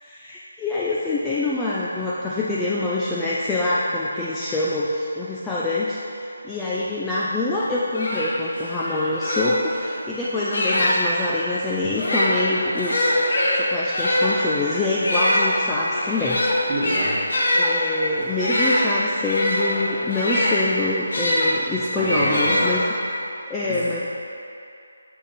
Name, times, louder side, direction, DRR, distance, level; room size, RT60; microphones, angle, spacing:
voice 1, 0.0-6.0 6.4-16.4 17.5-22.8 23.5-24.0, left 2 dB, 5° left, -8 dB, 0.3 m, -25 dB
sound 1, 7.5-7.6 7.9-11.2 11.9-21.5 22.0-23.1, left 1 dB, 65° left, 1.4 m, -23 dB
voice 2, 16.7-17.2 22.0-22.6 23.6-24.0, right 1 dB, 20° right, -7 dB, 1.2 m, -27 dB
7.0 x 5.2 x 4.2 m, 2.6 s
hypercardioid pair, 175°, 0 cm